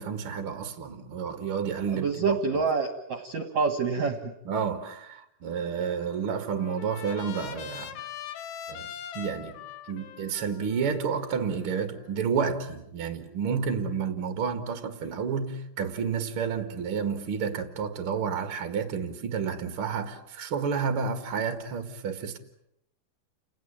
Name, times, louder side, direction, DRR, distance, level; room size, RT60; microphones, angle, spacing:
voice 1, 0.0-2.6 4.4-8.0 8.7-9.6 9.9-22.4, right 6 dB, 85° right, 1.1 m, -30 dB
voice 2, 1.9-4.3, right 4 dB, 65° right, 1.7 m, -27 dB
Trumpet, 6.0-12.2, left 9 dB, 70° left, 3.3 m, -42 dB
29.5 x 19.0 x 8.7 m
omnidirectional pair, 5.7 m